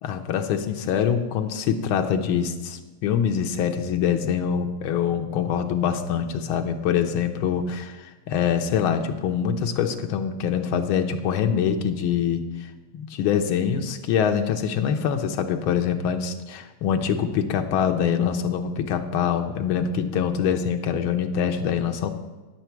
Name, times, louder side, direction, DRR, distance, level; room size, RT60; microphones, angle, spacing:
voice 1, 0.0-22.1, left 8 dB, 85° left, 6 dB, 1.5 m, -24 dB
10.5 x 8.2 x 4.5 m, 1.2 s
omnidirectional pair, 2.2 m